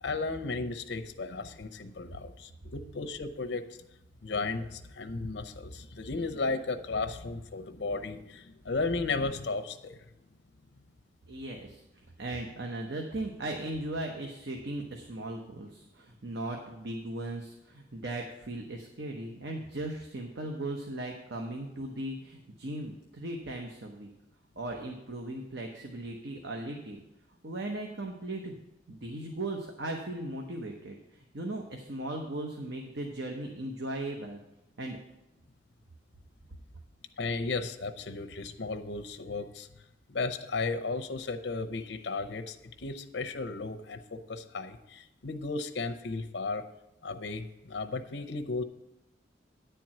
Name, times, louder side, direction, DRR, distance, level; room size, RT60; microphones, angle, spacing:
voice 1, 0.0-3.8 4.2-10.0 37.2-46.6 47.0-48.6, left 3 dB, 80° left, 7 dB, 0.7 m, -35 dB
voice 2, 11.3-11.8 12.2-24.1 24.6-27.0 27.4-28.6 28.9-34.4 34.8-35.0, right 1 dB, 70° right, 2 dB, 0.9 m, -37 dB
9.9 x 4.6 x 7.5 m, 0.92 s
head